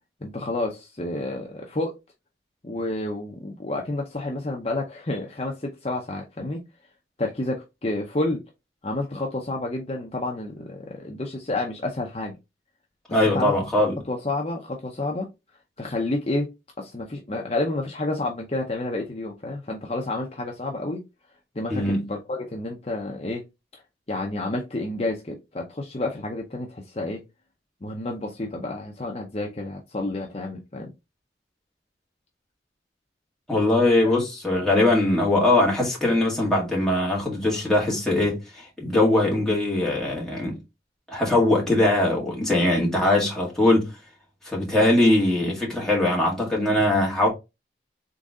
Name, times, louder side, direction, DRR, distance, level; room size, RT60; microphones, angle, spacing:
voice 1, 0.2-2.0 2.6-6.6 7.2-8.4 8.8-12.3 13.3-13.5 14.1-15.3 15.8-16.5 16.8-21.0 21.5-23.4 24.1-27.2 27.8-30.9 34.0-34.1, left 2 dB, 35° left, 0.7 m, -30 dB
voice 2, 13.1-14.0 21.7-22.1 33.5-40.5 41.1-43.9 44.4-47.3, left 1 dB, 5° left, 2.0 m, -21 dB
4.0 x 3.7 x 3.6 m
head